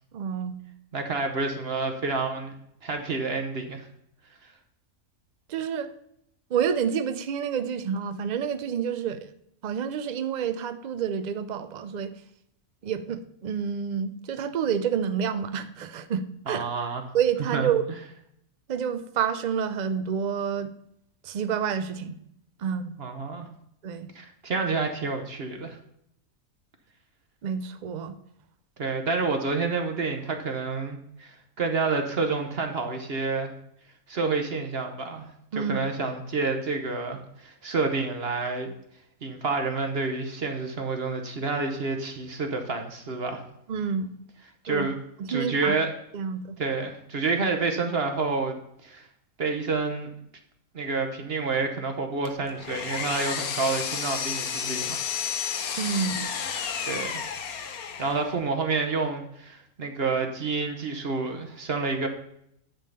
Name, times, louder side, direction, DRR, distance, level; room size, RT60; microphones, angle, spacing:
voice 1, 0.1-0.6 5.5-5.9 6.5-9.3 9.6-12.1 12.8-16.7 17.1-17.8 18.7-20.7 21.2-22.2 22.6-22.9 23.8-24.1 27.4-28.2 35.5-35.9 43.7-44.1 44.7-44.9 45.3-45.8 46.1-46.4 55.8-56.3, right 7 dB, 70° right, 11 dB, 0.4 m, -28 dB
voice 2, 0.9-2.5 2.8-3.8 16.5-17.0 17.5-17.7 23.0-23.5 24.1-25.8 28.8-33.5 34.1-38.7 39.2-43.4 44.6-45.0 45.3-45.9 46.6-49.1 49.4-50.1 50.7-55.0 56.9-57.2 58.0-62.1, right 4 dB, 45° right, 5 dB, 1.1 m, -29 dB
Power tool, 52.2-58.3, left 7 dB, 80° left, 1.3 m, -32 dB
10.5 x 3.7 x 6.5 m, 0.74 s
omnidirectional pair, 1.5 m